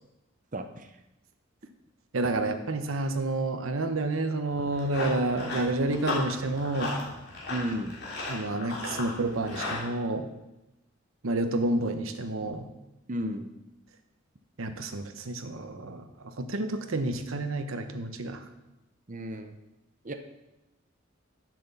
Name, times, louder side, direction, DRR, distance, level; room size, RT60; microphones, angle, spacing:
voice 1, 2.1-6.9 8.3-10.3 11.2-12.7 14.6-18.4, right 2 dB, 85° right, 7 dB, 1.0 m, -29 dB
Run, 4.5-9.8, left 2 dB, 50° left, 3.1 m, -36 dB
voice 2, 7.5-7.9 13.1-13.5 19.1-19.5 20.0-20.1, right 1 dB, 40° right, 7 dB, 0.7 m, -32 dB
8.0 x 7.6 x 6.9 m, 0.96 s
head